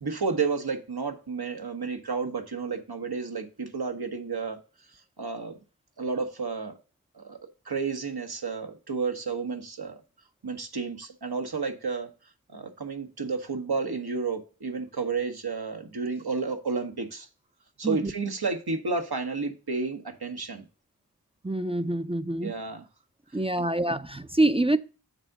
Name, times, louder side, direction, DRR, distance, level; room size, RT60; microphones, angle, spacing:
voice 1, 0.0-4.6 5.2-5.6 6.0-6.8 7.1-10.0 10.4-12.1 12.5-17.3 17.8-20.6 22.4-22.8, right 4 dB, 85° right, 1.3 m, -31 dB
voice 2, 21.4-22.5 23.3-24.8, right 1 dB, 15° right, 0.4 m, -26 dB
7.4 x 3.7 x 6.5 m
wide cardioid pair, 50°, 37 cm